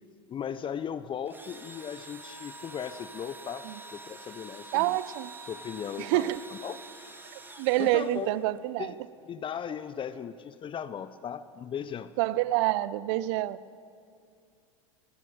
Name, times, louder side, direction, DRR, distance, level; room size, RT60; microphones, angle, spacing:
voice 1, 0.3-5.0 5.5-6.8 7.8-8.4 8.8-9.0 9.2-12.1, left 8 dB, 30° left, 14 dB, 0.9 m, -37 dB
Engine / Drill, 1.3-8.6, right 2 dB, 10° right, 2.2 m, -47 dB
voice 2, 4.7-5.3 6.0-6.4 7.6-8.9 12.2-13.6, right 16 dB, 60° right, 18 dB, 0.8 m, -27 dB
25.5 x 15.0 x 8.7 m, 2.4 s
hypercardioid pair, 85°, 17 cm